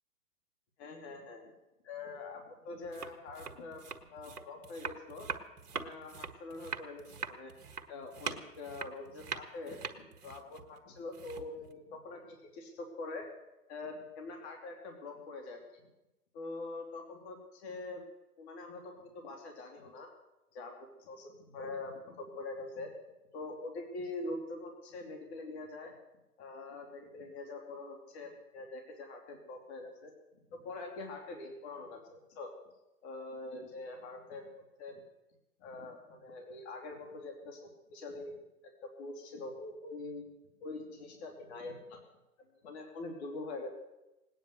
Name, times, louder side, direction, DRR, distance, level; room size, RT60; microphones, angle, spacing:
voice 1, 0.8-1.4 1.8-3.8 4.1-5.3 5.7-7.5 7.9-9.8 10.2-13.3 13.7-15.6 16.3-18.0 18.4-20.1 20.5-22.9 23.3-25.9 26.4-30.1 30.5-32.5 33.0-34.5 34.8-35.0 35.6-37.6 37.9-38.3 38.8-40.2 40.6-42.0 42.6-43.7, left 2 dB, 45° left, 3 dB, 3.1 m, -44 dB
sound 1, 2.8-11.7, right 5 dB, 85° right, 1.7 m, -43 dB
19.0 x 9.5 x 7.9 m, 0.98 s
hypercardioid pair, 135°, 45 cm